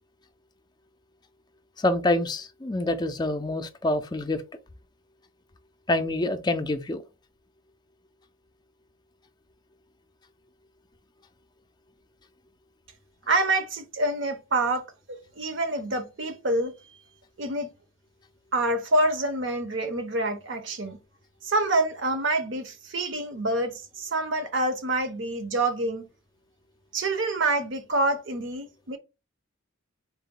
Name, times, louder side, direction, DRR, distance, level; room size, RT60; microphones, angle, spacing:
voice 1, 1.8-4.4 5.9-7.0, left 2 dB, 20° left, 0.4 m, -26 dB
voice 2, 13.3-14.8 15.4-16.7 17.4-17.7 18.5-21.0 21.4-26.1 26.9-29.0, right 2 dB, 60° right, 0.8 m, -27 dB
4.1 x 2.2 x 3.7 m
head